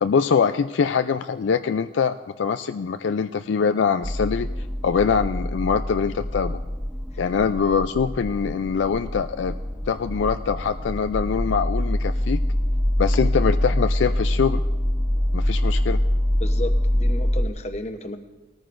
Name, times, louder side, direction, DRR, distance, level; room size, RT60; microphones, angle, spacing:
voice 1, 0.0-4.5 4.8-6.6 7.2-9.5 9.9-12.4 13.0-14.6 15.3-16.0, left 6 dB, 70° left, 9 dB, 0.4 m, -23 dB
sound 1, 4.0-17.4, left 1 dB, 5° right, 0.7 m, -25 dB
voice 2, 16.4-18.2, left 1 dB, 35° left, 7 dB, 0.8 m, -33 dB
19.5 x 14.0 x 2.5 m, 1.1 s
head